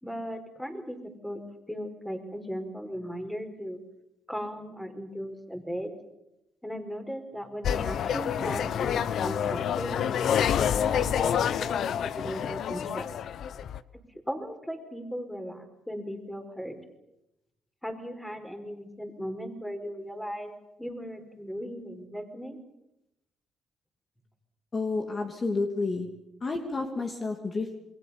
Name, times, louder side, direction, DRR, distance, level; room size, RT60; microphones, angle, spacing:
voice 1, 0.0-1.0 1.2-1.4 1.7-3.8 4.3-5.9 6.6-10.1 10.9-13.0 14.3-16.8 17.8-20.5 20.8-22.6, equal, 5° left, 7 dB, 4.8 m, -37 dB
sound 1, 7.6-13.8, left 8 dB, 70° left, 0.9 m, -28 dB
voice 2, 24.7-26.1 26.4-27.7, left 3 dB, 35° left, 3 dB, 2.9 m, -30 dB
28.0 x 22.5 x 7.2 m, 0.89 s
cardioid pair, 90°, 0 cm